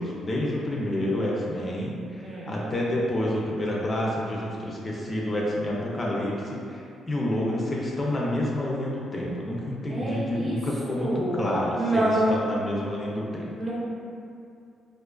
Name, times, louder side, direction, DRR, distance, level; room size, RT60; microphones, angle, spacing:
voice 1, 0.0-13.5, left 1 dB, 30° left, -4 dB, 0.4 m, -29 dB
voice 2, 2.2-2.6 9.9-10.6 11.0-11.4 11.7-12.5 13.5-13.7, right 1 dB, 30° right, -7 dB, 0.7 m, -27 dB
2.4 x 2.3 x 2.2 m, 2.5 s
cardioid pair, 90°, 0 cm